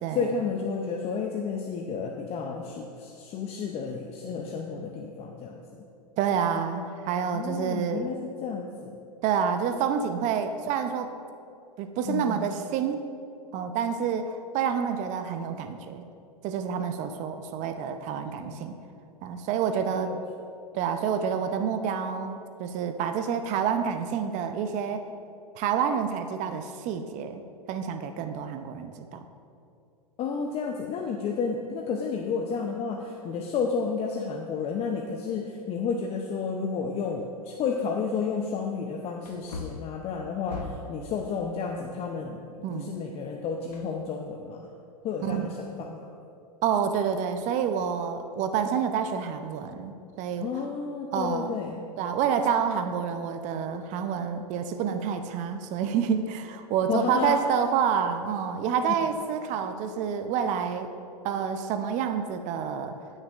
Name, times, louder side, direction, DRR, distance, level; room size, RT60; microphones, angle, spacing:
voice 1, 0.1-5.8 7.3-9.0 12.0-12.5 18.4-18.6 19.9-20.2 30.2-44.7 45.0-46.1 50.4-51.8 56.9-57.4, left 5 dB, 30° left, 2 dB, 0.6 m, -31 dB
voice 2, 6.2-8.1 9.2-11.1 11.8-13.0 13.5-16.0 16.4-18.7 19.2-20.1 20.7-25.0 25.6-27.4 27.7-29.2 42.6-42.9 45.2-45.4 46.6-50.5 51.1-51.5 52.0-60.9 61.2-62.9, right 7 dB, 35° right, 8 dB, 0.6 m, -28 dB
Wood, 39.2-41.0 43.7-44.5 44.8-44.9, left 3 dB, 75° left, 1.1 m, -40 dB
16.5 x 6.4 x 2.5 m, 2.5 s
hypercardioid pair, 105°, 20 cm